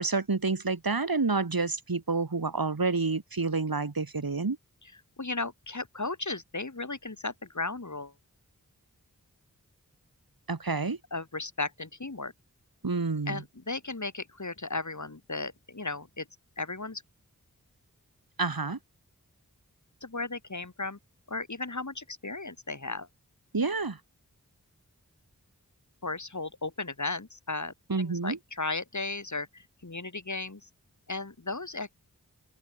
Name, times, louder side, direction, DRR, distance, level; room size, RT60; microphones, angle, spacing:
voice 1, 0.0-4.6 10.5-11.0 12.8-13.4 18.4-18.8 23.5-24.0 27.9-28.4, right 4 dB, 85° right, 7.1 m, -29 dB
voice 2, 5.2-8.1 11.1-12.3 13.3-16.3 16.6-17.0 20.0-21.0 21.3-23.1 26.0-30.6 31.1-31.9, left 3 dB, 55° left, 6.9 m, -35 dB
open air
wide cardioid pair, 55°, 35 cm